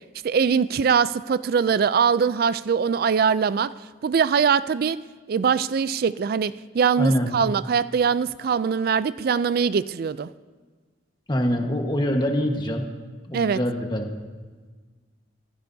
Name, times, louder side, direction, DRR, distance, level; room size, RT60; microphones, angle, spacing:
voice 1, 0.2-3.7 4.0-5.0 5.3-10.3 13.3-13.6, right 6 dB, 55° right, 16 dB, 0.4 m, -22 dB
voice 2, 7.0-7.3 11.3-12.8 13.3-14.1, equal, 25° left, 3 dB, 1.4 m, -24 dB
24.5 x 15.0 x 2.7 m, 1.4 s
head